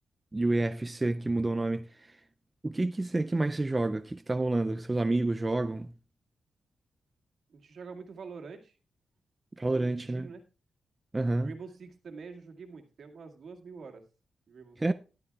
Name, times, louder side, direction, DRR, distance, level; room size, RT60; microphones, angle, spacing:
voice 1, 0.3-1.9 2.6-5.9 9.6-10.3 11.1-11.5 14.8-14.9, right 2 dB, 20° right, 0.4 m, -29 dB
voice 2, 7.5-8.8 9.7-10.4 11.4-14.0 14.5-14.8, right 5 dB, 65° right, 2.0 m, -46 dB
12.5 x 12.0 x 2.3 m
cardioid pair, 100°, 0 cm